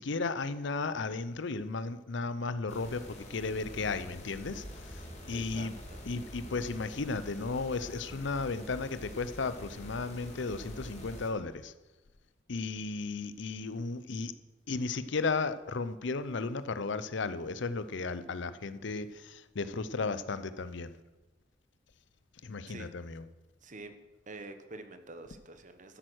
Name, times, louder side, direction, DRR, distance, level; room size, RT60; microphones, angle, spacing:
voice 1, 0.0-3.0 3.3-5.0 5.3-5.7 6.1-11.7 12.5-14.3 14.7-20.9 22.4-23.2, left 4 dB, 70° left, 13 dB, 0.7 m, -34 dB
sound 1, 2.7-11.3, equal, 40° left, 2.5 m, -46 dB
voice 2, 5.3-6.1 22.7-23.0 23.6-24.0 24.3-26.0, right 2 dB, 45° right, 9 dB, 1.2 m, -47 dB
13.0 x 9.1 x 6.3 m, 1.1 s
head